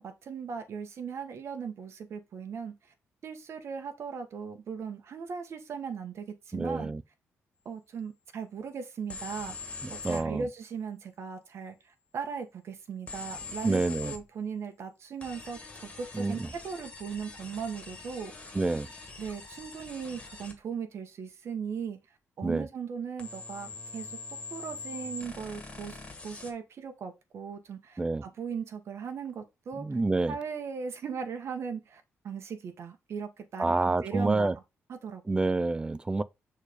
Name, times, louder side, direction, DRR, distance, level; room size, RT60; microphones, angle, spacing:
voice 1, 0.0-2.7 3.2-6.9 7.6-9.5 9.9-11.7 12.1-18.5 19.2-22.0 22.4-24.2 24.5-26.0 26.2-29.9 30.3-34.5 34.9-35.2, right 6 dB, 60° right, 1.1 m, -38 dB
voice 2, 6.5-7.0 9.8-10.5 13.6-14.1 16.1-16.5 18.5-18.9 22.4-22.7 28.0-28.2 29.8-30.4 33.6-34.5 35.3-36.2, right 3 dB, 15° right, 0.4 m, -28 dB
sound 1, 9.1-10.3 13.1-14.2 15.2-20.6 23.2-26.5, left 3 dB, 20° left, 1.8 m, -43 dB
6.4 x 3.3 x 4.9 m
cardioid pair, 110°, 5 cm